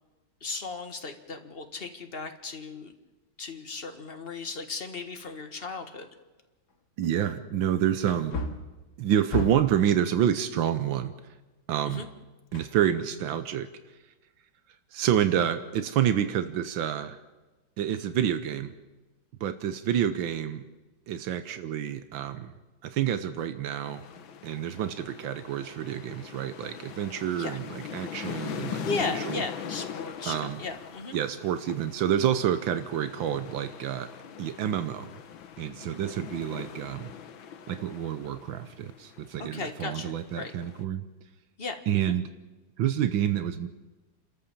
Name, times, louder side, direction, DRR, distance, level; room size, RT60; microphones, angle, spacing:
voice 1, 0.4-2.9 3.4-6.1 11.9-12.1 27.3-27.6 28.8-31.2 39.4-40.5 41.6-42.1, left 4 dB, 30° left, 6 dB, 1.7 m, -36 dB
Wood, 6.0-6.1 6.7-6.8 8.0-9.8 12.5-13.3 13.6-13.7, left 3 dB, 55° left, 2.5 m, -35 dB
voice 2, 7.0-8.4 9.0-11.1 11.7-12.0 12.5-13.7 14.9-17.2 17.8-18.7 19.4-20.6 21.1-22.5 22.8-24.0 24.4-29.4 30.2-30.6 31.1-34.1 34.4-35.1 35.6-37.1 37.7-41.0 41.9-42.2 42.8-43.7, right 10 dB, 85° right, 11 dB, 1.7 m, -28 dB
sound 1, 23.8-40.8, left 8 dB, 90° left, 1.8 m, -41 dB
29.0 x 13.5 x 7.3 m, 1.2 s
omnidirectional pair, 2.1 m